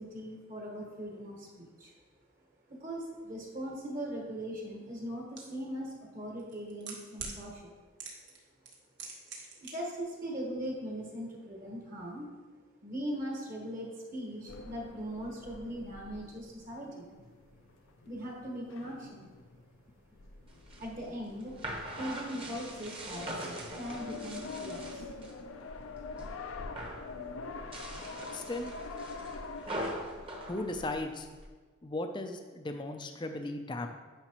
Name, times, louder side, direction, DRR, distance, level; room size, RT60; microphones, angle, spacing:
voice 1, 0.0-1.9 2.7-7.7 9.6-12.3 12.8-17.1 18.0-19.3 20.8-21.5 22.0-23.3 23.8-25.0, equal, 40° right, -2 dB, 1.3 m, -40 dB
sound 1, 5.4-5.5 6.4-7.4 8.0-8.4 8.6-9.7 10.0-10.1, right 5 dB, 55° right, 1.5 m, -42 dB
sound 2, 14.5-30.9, left 3 dB, 80° left, 0.6 m, -45 dB
sound 3, 20.5-25.4 25.8-26.3 26.6-27.1 27.6-31.5, right 1 dB, 25° right, 1.0 m, -42 dB
voice 2, 28.3-28.7 30.5-31.3 31.8-33.9, left 2 dB, 20° left, 5 dB, 0.4 m, -36 dB
9.9 x 5.7 x 3.0 m, 1.4 s
head